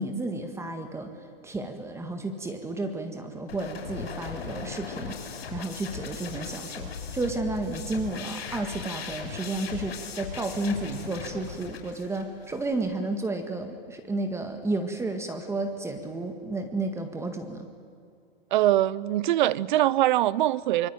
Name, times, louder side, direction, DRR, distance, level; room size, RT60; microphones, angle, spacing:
voice 1, 0.0-17.7, right 2 dB, 10° right, 6 dB, 1.8 m, -32 dB
sound 1, 3.5-12.7, left 6 dB, 75° left, 6.5 m, -38 dB
voice 2, 18.5-20.9, right 14 dB, 50° right, 21 dB, 0.8 m, -23 dB
25.0 x 23.0 x 9.2 m, 2.3 s
hypercardioid pair, 135°, 30 cm